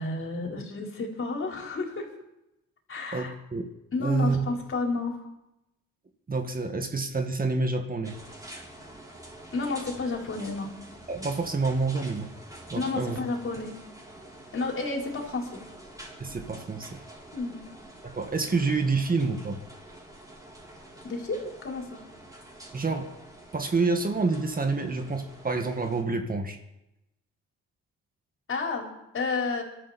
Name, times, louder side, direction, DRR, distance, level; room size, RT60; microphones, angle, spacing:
voice 1, 0.0-2.1 2.9-3.3 3.9-5.3 9.5-10.7 12.7-13.7 14.5-15.6 17.3-17.7 21.0-22.0 28.5-29.6, left 3 dB, 45° left, 0 dB, 4.7 m, -31 dB
voice 2, 3.1-3.7 4.0-4.5 6.3-8.2 11.1-12.3 12.7-13.2 16.2-17.0 18.0-19.6 22.7-23.1 23.5-26.6, right 3 dB, 30° right, 5 dB, 2.0 m, -28 dB
sound 1, 8.0-26.0, right 1 dB, 10° right, 6.8 m, -47 dB
25.0 x 13.0 x 4.4 m, 0.89 s
cardioid pair, 90°, 30 cm